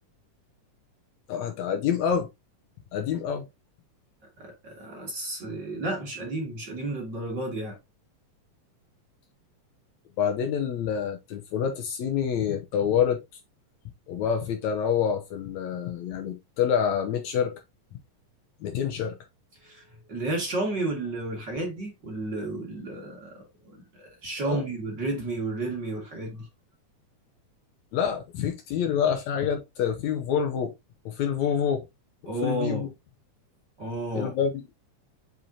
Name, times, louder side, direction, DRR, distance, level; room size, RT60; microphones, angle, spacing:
voice 1, 1.3-2.3 2.9-3.5 10.2-13.2 14.1-17.6 18.6-19.2 24.4-24.7 27.9-30.7 31.1-31.8 32.4-32.9 34.1-34.6, left 8 dB, 70° left, 1.9 m, -27 dB
voice 2, 4.4-7.8 19.6-19.8 20.1-26.5 32.3-32.9 33.8-34.3, right 2 dB, 40° right, 2.2 m, -32 dB
7.9 x 5.9 x 2.7 m
omnidirectional pair, 3.7 m